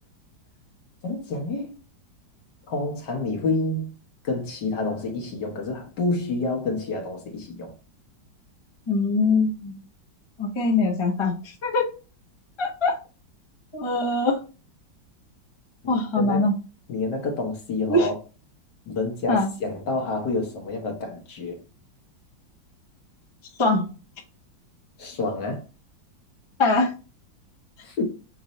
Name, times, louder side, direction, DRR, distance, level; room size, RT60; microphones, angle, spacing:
voice 1, 1.0-1.7 2.7-3.9 4.2-7.7 15.8-16.5 16.9-18.2 18.9-21.6 25.0-25.6 27.8-28.0, left 3 dB, 65° left, 1.7 m, -28 dB
voice 2, 8.9-9.7 10.4-11.9 12.6-13.0 13.7-14.4 15.9-16.5 17.9-18.1 19.3-19.5 23.6-23.9 26.6-26.9, left 2 dB, 25° left, 0.7 m, -22 dB
6.6 x 2.7 x 3.0 m
omnidirectional pair, 2.1 m